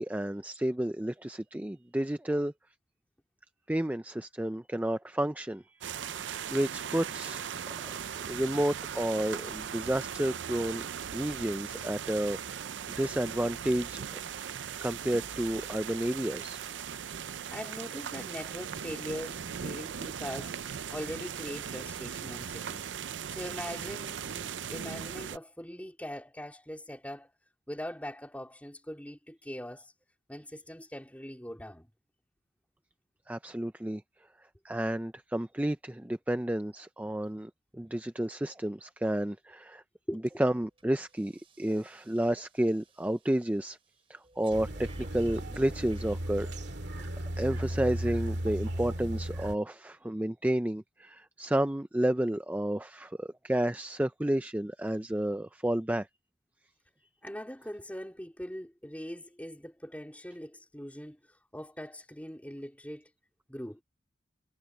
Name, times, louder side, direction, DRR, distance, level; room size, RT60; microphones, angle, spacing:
voice 1, 0.0-2.5 3.7-7.5 8.3-10.8 11.1-14.2 14.8-16.7 33.3-34.0 34.6-39.8 40.4-43.8 44.1-46.5 46.9-56.1, right 1 dB, 10° right, 0.4 m, -31 dB
sound 1, 5.8-25.4, right 8 dB, 85° right, 0.5 m, -39 dB
voice 2, 17.5-22.9 23.3-27.3 27.7-29.9 30.3-31.9 40.1-40.2 57.2-63.1 63.5-63.8, equal, 10° left, 3.8 m, -41 dB
Breathing, 40.3-40.4 40.8-47.2 47.8-47.9, right 3 dB, 30° right, 3.8 m, -58 dB
sound 2, 44.5-49.5, right 1 dB, 70° right, 2.2 m, -35 dB
head